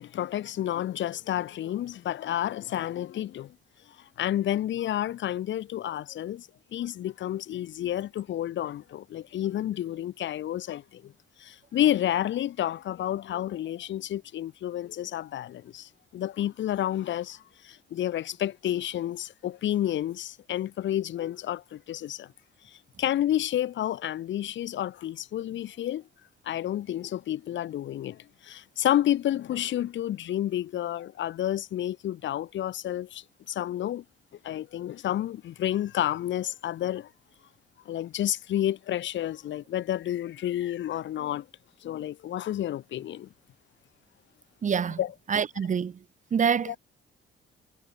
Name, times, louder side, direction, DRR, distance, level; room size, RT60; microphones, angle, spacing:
voice 1, 0.0-3.5 4.0-11.1 11.4-22.3 22.7-26.0 26.4-34.0 34.4-37.1 37.8-41.5 41.8-43.3 45.0-45.1 46.7-46.8, left 12 dB, 70° left, 1.2 m, -30 dB
voice 2, 44.6-45.0 45.3-46.0 46.3-46.8, right 7 dB, 40° right, 0.9 m, -26 dB
cardioid pair, 90°, 20 cm